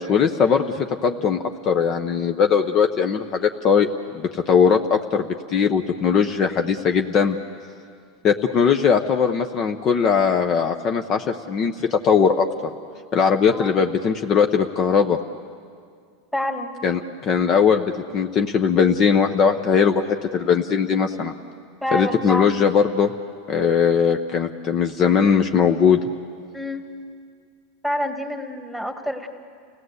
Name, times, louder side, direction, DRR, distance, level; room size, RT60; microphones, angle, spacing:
voice 1, 0.0-3.9 4.1-7.4 8.2-12.5 13.1-15.2 16.8-21.3 21.9-23.1 23.5-26.0, left 6 dB, 40° left, 6 dB, 0.9 m, -20 dB
voice 2, 16.3-16.8 21.8-22.6 26.5-26.9 27.8-29.3, left 1 dB, 5° left, 6 dB, 1.8 m, -27 dB
29.0 x 17.0 x 8.1 m, 2.2 s
supercardioid pair, 125°, 0 cm